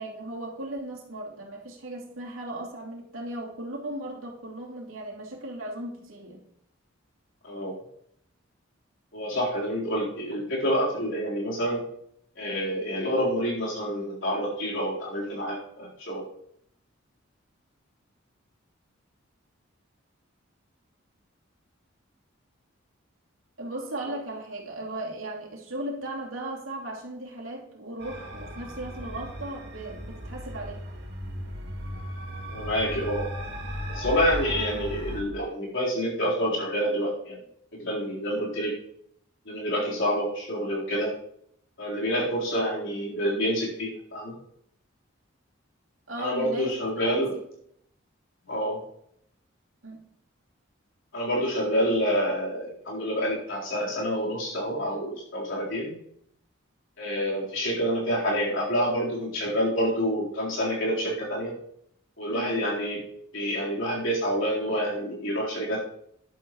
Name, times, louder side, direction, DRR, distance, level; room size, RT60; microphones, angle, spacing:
voice 1, 0.0-6.4 23.6-30.9 46.1-47.4 49.8-50.0 62.3-62.6, right 1 dB, 90° right, -1 dB, 2.7 m, -37 dB
voice 2, 7.4-7.8 9.1-11.8 12.4-16.2 24.0-24.1 32.5-33.3 33.9-37.4 37.8-38.7 39.5-41.1 41.8-44.3 46.2-47.3 48.5-48.8 51.1-55.9 57.0-61.6 62.2-63.0 63.3-65.8, equal, 70° left, -4 dB, 4.0 m, -28 dB
sound 1, 28.0-35.2, equal, 55° right, 2.3 m, -36 dB
12.5 x 10.5 x 3.1 m, 0.71 s
head